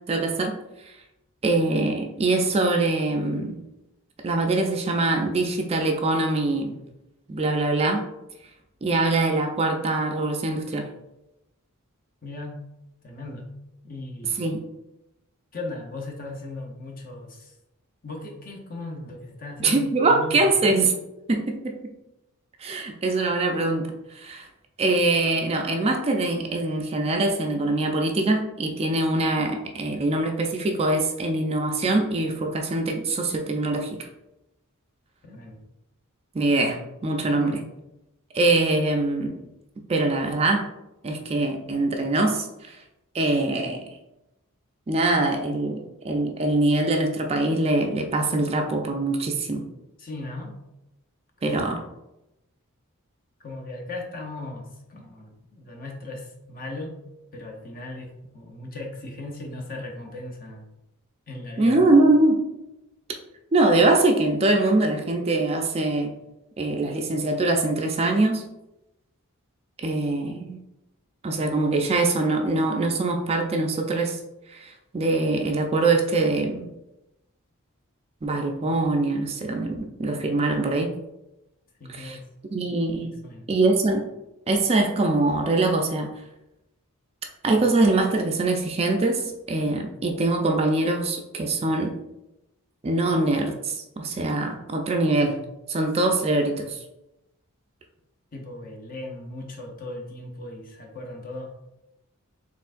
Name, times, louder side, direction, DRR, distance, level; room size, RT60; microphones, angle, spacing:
voice 1, 0.1-0.5 0.8-0.9 1.4-3.6 4.2-6.8 7.3-8.0 8.8-10.9 14.4-14.6 19.6-21.0 21.3-21.8 22.6-24.5 24.8-34.1 36.3-37.6 38.3-39.4 39.8-40.7 41.0-42.8 43.1-44.0 44.9-49.6 51.4-51.8 61.6-62.4 63.5-66.1 66.6-68.4 69.8-70.6 71.2-74.2 74.5-76.7 78.2-80.9 81.9-82.2 82.5-83.2 83.5-84.1 84.5-86.1 87.4-92.0 92.8-95.4 95.7-96.8, right 2 dB, 30° right, 3 dB, 0.4 m, -23 dB
voice 2, 12.2-12.6 13.0-13.5 13.8-14.5 15.5-17.5 18.0-20.8 35.2-35.6 37.1-37.7 50.0-50.5 51.4-51.7 53.4-57.0 57.3-60.7 61.3-61.8 81.8-82.2 83.0-83.5 98.3-101.5, left 2 dB, 40° left, 2 dB, 0.7 m, -38 dB
4.4 x 3.6 x 2.5 m, 0.92 s
head